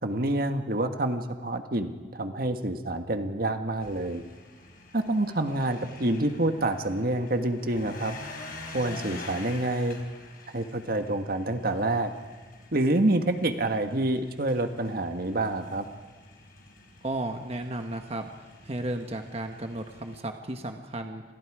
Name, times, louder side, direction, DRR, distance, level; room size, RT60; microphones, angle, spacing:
voice 1, 0.0-4.2 4.9-8.1 8.7-10.0 10.5-12.1 12.7-15.9, right 1 dB, 55° right, 6 dB, 1.6 m, -27 dB
sound 1, 3.8-20.2, left 2 dB, 55° left, 4.7 m, -47 dB
voice 2, 17.0-18.3 18.6-21.2, right 1 dB, 35° right, 5 dB, 1.4 m, -34 dB
29.5 x 27.0 x 5.0 m, 1.4 s
head